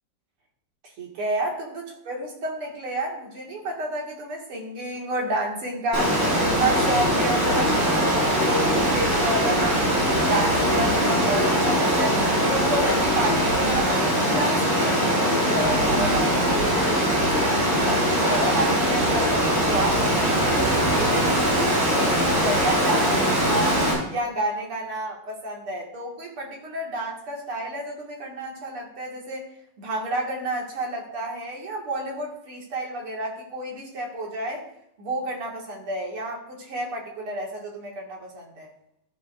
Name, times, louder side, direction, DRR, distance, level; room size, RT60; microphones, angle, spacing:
voice 1, 1.0-12.2 12.5-23.8 24.1-29.4 29.8-34.6 35.0-38.7, right 1 dB, 75° right, -1 dB, 3.0 m, -30 dB
Water, 5.9-23.9, equal, 55° right, 5.2 m, -21 dB
13.5 x 8.5 x 2.6 m, 0.76 s
omnidirectional pair, 2.4 m